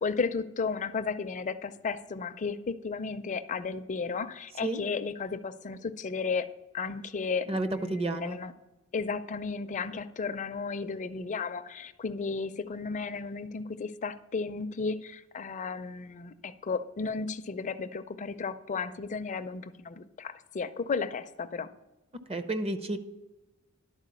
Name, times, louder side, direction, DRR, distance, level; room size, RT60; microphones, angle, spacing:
voice 1, 0.0-6.5 6.7-8.5 8.9-21.7, left 4 dB, 35° left, 10 dB, 0.4 m, -34 dB
voice 2, 7.5-8.4 22.3-23.0, right 2 dB, 25° right, 11 dB, 0.6 m, -31 dB
11.5 x 4.4 x 6.7 m, 1.1 s
head